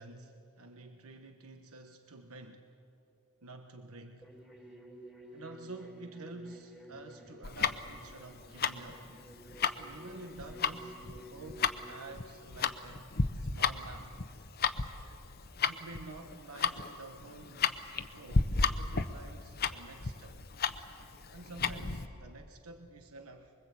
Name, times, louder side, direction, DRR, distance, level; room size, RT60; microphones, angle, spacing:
voice 1, 0.0-2.7 3.4-4.3 5.3-9.1 9.7-13.1 13.3-14.2 15.7-20.4 21.3-23.5, right 2 dB, 80° right, 6 dB, 1.2 m, -49 dB
sound 1, 4.2-12.1, right 1 dB, 5° right, 3.8 m, -52 dB
Tick-tock, 7.4-22.1, left 5 dB, 45° left, 0.8 m, -33 dB
24.5 x 23.0 x 8.4 m, 2.7 s
head